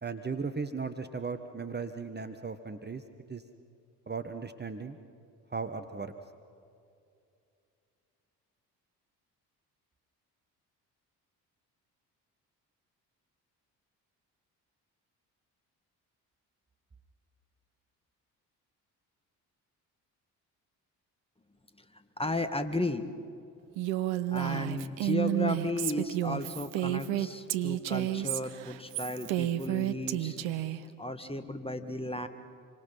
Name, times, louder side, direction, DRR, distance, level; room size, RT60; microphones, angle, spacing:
voice 1, 0.0-3.0 3.3-3.4 4.1-5.0 5.5-6.1, right 5 dB, 20° right, 8 dB, 1.3 m, -36 dB
voice 2, 22.2-23.1 24.3-30.4 31.0-32.3, left 2 dB, 10° left, 9 dB, 1.9 m, -34 dB
Female speech woman speaking, 23.8-30.8, right 13 dB, 65° right, 1.1 m, -31 dB
28.0 x 24.5 x 5.6 m, 2.4 s
figure-of-eight pair, 45°, 48 cm